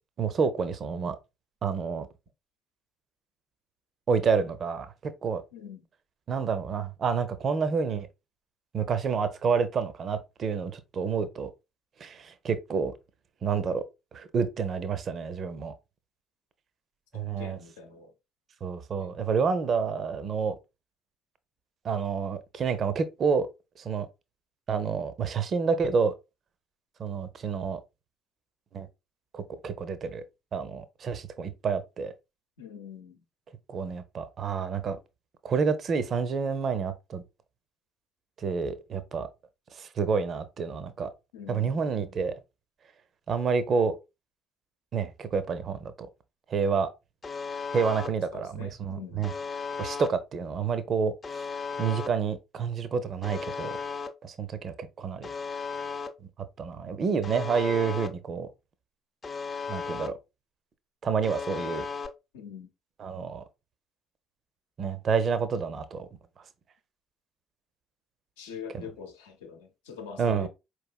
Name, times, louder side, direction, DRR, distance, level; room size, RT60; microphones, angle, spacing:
voice 1, 0.2-1.2 1.6-2.1 4.1-5.4 6.3-8.1 8.7-11.5 12.0-12.9 13.4-13.8 14.1-15.7 17.1-17.6 18.6-20.5 21.8-23.5 23.8-24.1 24.7-26.1 27.0-27.8 28.7-28.9 29.3-30.2 30.5-32.1 33.7-35.0 35.4-37.2 38.4-39.3 39.7-41.1 41.5-42.3 43.3-43.9 44.9-46.1 46.5-46.9 47.7-49.3 49.8-51.4 51.8-53.8 54.2-55.3 56.2-56.3 56.6-58.5 59.7-60.2 61.0-61.9 63.0-63.4 64.8-66.1 68.7-68.9 70.2-70.5, right 5 dB, 45° right, 0.5 m, -29 dB
voice 2, 5.5-5.9 17.1-18.1 19.0-19.1 32.6-33.2 41.3-41.8 48.3-49.3 62.3-62.7 68.4-70.5, left 7 dB, 75° left, 0.6 m, -43 dB
Alarm, 47.2-48.1 49.2-50.1 51.2-52.1 53.2-54.1 55.2-56.1 57.2-58.1 59.2-60.1 61.2-62.1, left 5 dB, 35° left, 0.5 m, -35 dB
4.5 x 3.1 x 2.2 m
figure-of-eight pair, 50°, 0 cm